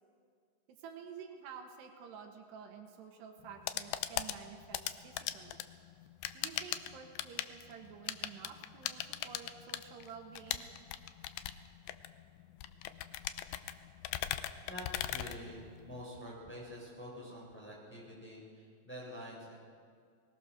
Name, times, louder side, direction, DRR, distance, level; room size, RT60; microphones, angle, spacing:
voice 1, 0.8-5.6 6.3-10.7, right 7 dB, 80° right, 4 dB, 3.5 m, -50 dB
sound 1, 3.4-16.0, left 13 dB, 80° left, 2.2 m, -40 dB
voice 2, 14.7-19.5, equal, 5° left, -5 dB, 5.6 m, -47 dB
22.5 x 20.0 x 6.4 m, 2.1 s
omnidirectional pair, 4.8 m